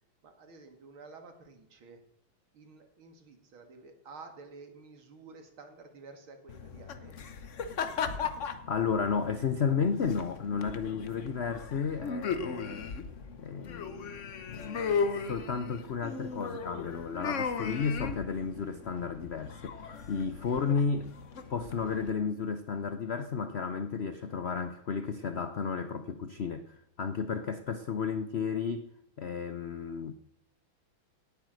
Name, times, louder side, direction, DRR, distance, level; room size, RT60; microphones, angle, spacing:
voice 1, 0.2-2.0 2.5-7.2, right 4 dB, 85° right, 2.8 m, -51 dB
sound 1, 6.5-22.1, left 5 dB, 50° left, 1.1 m, -37 dB
voice 2, 8.7-12.9 13.4-14.2 15.3-19.8 20.1-21.1 21.5-28.9 29.2-30.1, left 6 dB, 80° left, 0.5 m, -32 dB
18.0 x 8.5 x 6.3 m
omnidirectional pair, 2.2 m